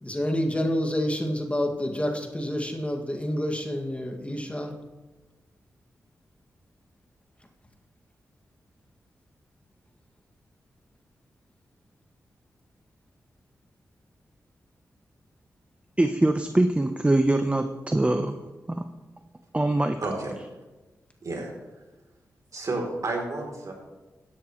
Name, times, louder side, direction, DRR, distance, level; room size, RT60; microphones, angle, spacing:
voice 1, 0.0-4.7, equal, 20° left, 3 dB, 1.9 m, -28 dB
voice 2, 16.0-18.4 18.7-18.9 19.5-20.0, right 1 dB, 20° right, 7 dB, 0.7 m, -23 dB
voice 3, 20.0-20.3 21.2-21.5 22.5-23.7, right 2 dB, 60° right, 1 dB, 3.0 m, -31 dB
13.5 x 9.9 x 3.1 m, 1.1 s
cardioid pair, 55°, 6 cm